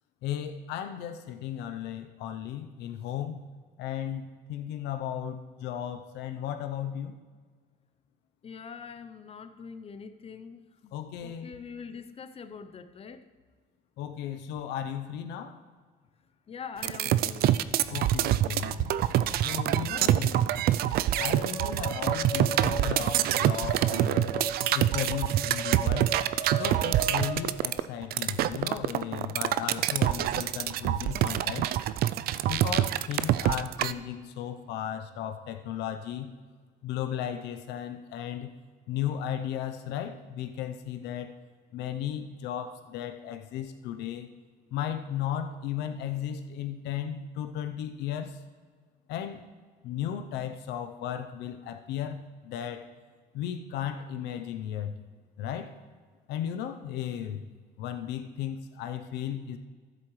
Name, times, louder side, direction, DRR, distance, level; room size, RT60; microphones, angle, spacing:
voice 1, 0.2-3.4 3.8-7.2 10.9-11.5 13.0-13.2 14.0-15.6 17.9-18.9 19.4-20.5 21.2-24.3 24.7-26.1 26.6-31.8 32.5-36.3 36.8-38.5 38.9-41.3 41.7-44.3 44.7-48.4 49.1-49.4 49.8-52.9 53.3-55.0 55.4-55.7 56.3-57.5 57.8-59.6, left 10 dB, 85° left, 7 dB, 0.6 m, -35 dB
voice 2, 8.4-10.9 11.2-13.2 16.5-17.6, left 6 dB, 35° left, 10 dB, 0.6 m, -43 dB
sound 1, 16.8-33.9, right 13 dB, 65° right, 0.4 m, -26 dB
sound 2, 21.1-27.3, right 2 dB, 40° right, 2.3 m, -37 dB
14.0 x 7.8 x 3.2 m, 1.5 s
cardioid pair, 110°, 17 cm